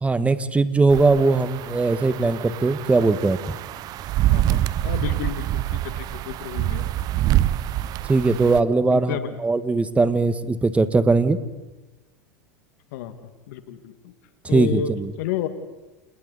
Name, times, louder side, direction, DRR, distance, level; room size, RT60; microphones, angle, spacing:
voice 1, 0.0-3.6 8.1-11.4 14.4-15.1, right 3 dB, 15° right, 12 dB, 1.5 m, -20 dB
sound 1, 0.9-8.6, right 14 dB, 45° right, 0.8 m, -26 dB
voice 2, 4.3-6.8 8.9-9.4 12.9-13.1 13.5-14.1 14.5-14.9 15.2-15.5, left 10 dB, 65° left, 9 dB, 2.1 m, -31 dB
28.5 x 28.5 x 4.2 m, 1.1 s
hypercardioid pair, 95°, 9 cm